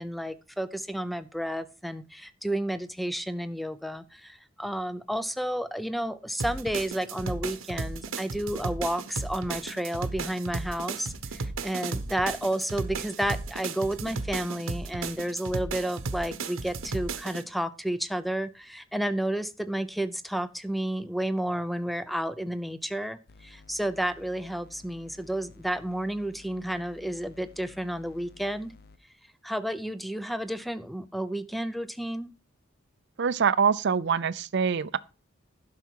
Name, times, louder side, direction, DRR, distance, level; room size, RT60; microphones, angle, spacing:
voice 1, 0.0-28.7 29.4-32.3, right 1 dB, ahead, 0.5 m, -31 dB
sound 1, 6.4-17.4, right 3 dB, 85° right, 1.0 m, -35 dB
sound 2, 23.3-29.0, left 3 dB, 50° left, 0.6 m, -54 dB
voice 2, 33.2-35.0, right 6 dB, 60° right, 0.5 m, -24 dB
11.5 x 5.9 x 4.6 m
head